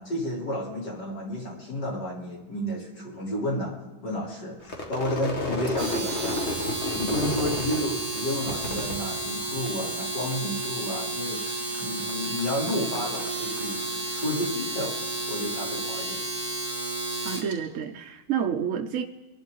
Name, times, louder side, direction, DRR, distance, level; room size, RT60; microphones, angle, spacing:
voice 1, 0.0-3.8 4.0-6.5 6.9-13.8 14.1-14.9 15.3-16.2, equal, 55° left, -4 dB, 4.5 m, -31 dB
Crowd / Fireworks, 4.6-10.0 10.3-11.0 11.3-14.8, left 2 dB, 35° left, 2.1 m, -34 dB
Domestic sounds home sounds, 5.7-17.5, right 2 dB, 25° right, 3.7 m, -32 dB
voice 2, 17.2-19.0, right 8 dB, 60° right, 5 dB, 0.8 m, -29 dB
26.0 x 11.5 x 4.0 m, 1.1 s
omnidirectional pair, 2.1 m